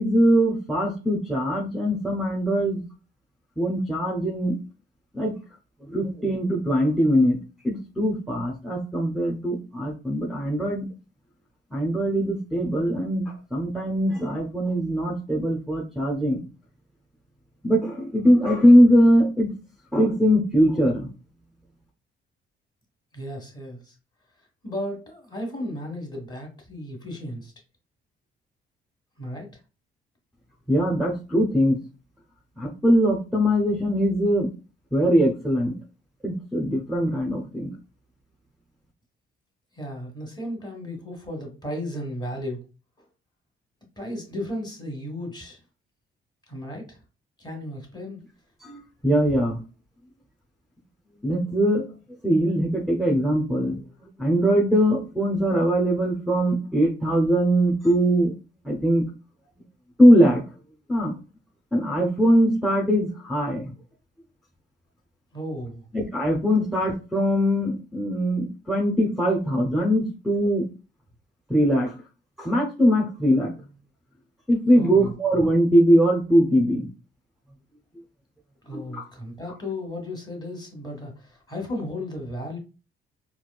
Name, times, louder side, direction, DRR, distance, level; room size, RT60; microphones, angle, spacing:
voice 1, 0.0-2.9 3.6-4.6 5.1-5.3 5.8-7.4 7.6-10.9 11.7-16.4 17.6-19.5 19.9-21.1 30.7-31.8 32.6-34.5 34.9-35.7 36.2-37.7 48.6-49.6 51.2-51.8 52.2-53.8 54.2-58.3 58.6-59.1 60.0-60.4 60.9-61.1 61.7-63.7 65.9-70.7 71.5-71.9 72.4-73.5 74.5-76.9 78.7-79.0, equal, ahead, 0.7 m, -21 dB
voice 2, 23.1-23.9 24.6-27.5 29.2-29.5 39.7-42.6 44.0-45.6 46.5-47.0 47.4-48.2 65.3-65.8 74.7-75.1 78.6-82.6, left 1 dB, 20° left, 1.5 m, -34 dB
4.1 x 2.4 x 2.3 m
cardioid pair, 90°, 20 cm